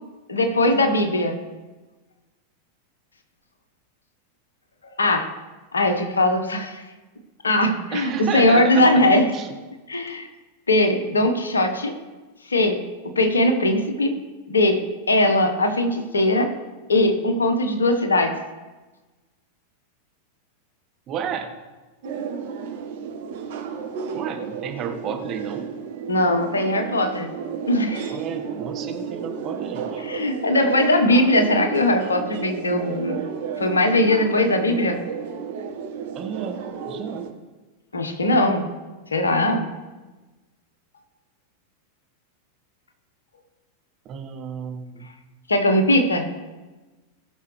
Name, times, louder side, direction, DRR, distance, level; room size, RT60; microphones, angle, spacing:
voice 1, 0.3-1.4 5.0-5.3 5.7-6.8 7.4-9.3 9.9-10.3 10.7-12.0 12.5-14.2 14.5-16.5 16.9-18.4 26.1-27.3 27.7-28.1 30.0-33.2 33.6-35.0 37.9-38.7 39.1-39.7 45.5-46.3, left 1 dB, 75° left, 6 dB, 1.4 m, -20 dB
voice 2, 7.9-9.1 9.3-9.5 21.1-21.5 24.1-25.7 28.1-30.0 36.1-37.2 44.0-45.1, right 7 dB, 35° right, 4 dB, 1.5 m, -32 dB
sound 1, 22.0-37.3, right 6 dB, 55° right, 1.5 m, -32 dB
19.0 x 6.4 x 3.4 m, 1.2 s
figure-of-eight pair, 90°, 0 cm